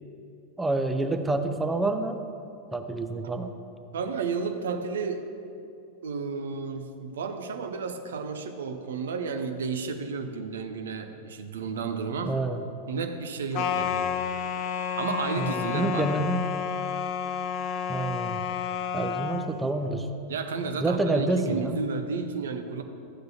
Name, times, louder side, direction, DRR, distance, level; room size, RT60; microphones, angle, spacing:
voice 1, 0.6-2.2 2.7-3.5 12.3-12.6 15.4-16.4 17.9-18.4 18.9-20.1 20.8-21.8, right 2 dB, 10° right, 6 dB, 0.6 m, -28 dB
voice 2, 3.9-5.2 6.0-12.3 12.9-14.1 15.0-16.1 20.3-22.8, right 5 dB, 65° right, 7 dB, 0.8 m, -32 dB
sound 1, 13.5-19.5, left 7 dB, 40° left, 0.5 m, -30 dB
14.0 x 7.8 x 2.8 m, 2.5 s
figure-of-eight pair, 90°, 0 cm